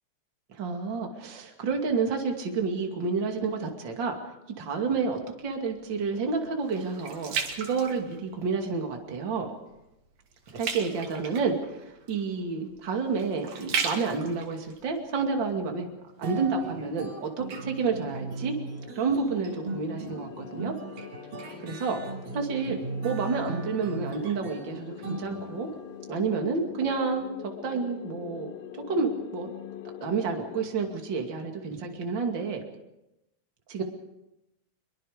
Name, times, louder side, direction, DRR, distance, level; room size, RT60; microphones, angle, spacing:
voice 1, 0.5-4.2 4.6-9.5 10.5-15.9 16.2-18.5 18.9-20.7 21.6-22.0 22.3-22.8 23.0-25.7 26.1-28.5 28.9-29.5 30.0-32.6 33.7-33.8, right 4 dB, 35° right, 3 dB, 2.9 m, -29 dB
sound 1, 5.4-8.7 9.1-9.5 9.8-15.7 16.3-16.4, right 5 dB, 55° right, 3.2 m, -36 dB
sound 2, 16.2-25.9, right 3 dB, 75° right, 4.6 m, -39 dB
sound 3, 17.9-30.7, left 11 dB, 65° left, 1.9 m, -44 dB
25.0 x 23.0 x 5.2 m, 0.91 s
omnidirectional pair, 3.9 m